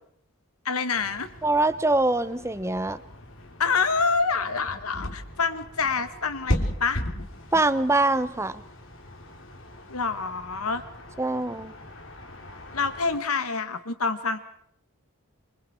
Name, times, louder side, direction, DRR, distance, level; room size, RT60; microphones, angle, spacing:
voice 1, 0.7-1.3 3.6-7.0 9.9-10.8 12.7-14.4, left 4 dB, 85° left, 10 dB, 1.9 m, -27 dB
sound 1, 0.9-13.2, left 1 dB, 60° left, 3.2 m, -37 dB
voice 2, 1.4-3.0 7.5-8.6 11.2-11.7, right 2 dB, 15° right, 13 dB, 0.9 m, -23 dB
27.5 x 25.5 x 4.5 m, 0.69 s
head